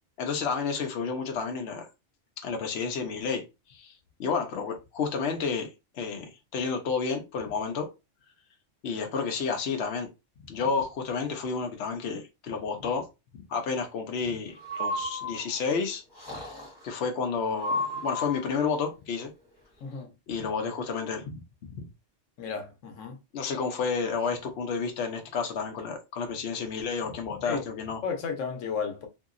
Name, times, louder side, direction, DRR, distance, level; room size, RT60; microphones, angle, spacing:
voice 1, 0.2-1.9 2.4-3.4 3.7-3.9 4.2-5.7 5.9-7.9 8.8-10.1 10.5-13.1 13.5-16.0 16.3-16.6 16.8-19.3 20.3-21.4 21.7-21.8 23.3-28.0, left 5 dB, 65° left, 0.9 m, -31 dB
Breathing, 14.6-15.7 16.1-16.8 17.5-18.6, left 1 dB, 20° left, 1.3 m, -33 dB
voice 2, 19.8-20.1 22.4-23.2 27.4-27.6 28.0-29.1, left 5 dB, 90° left, 1.1 m, -33 dB
2.8 x 2.7 x 2.5 m
omnidirectional pair, 1.3 m